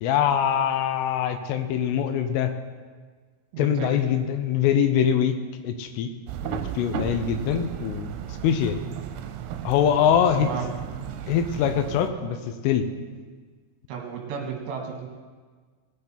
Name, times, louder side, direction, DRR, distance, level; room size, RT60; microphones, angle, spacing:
voice 1, 0.0-2.5 3.6-5.4 5.6-6.1 6.4-8.1 8.4-8.8 9.6-10.5 11.3-12.4 12.6-12.9, left 9 dB, 80° left, 8 dB, 3.2 m, -23 dB
voice 2, 3.5-4.0 10.4-10.7 13.9-15.1, right 6 dB, 65° right, 1 dB, 3.5 m, -33 dB
sound 1, 6.3-12.1, right 9 dB, 85° right, 3.2 m, -34 dB
18.5 x 8.0 x 4.4 m, 1.5 s
omnidirectional pair, 5.9 m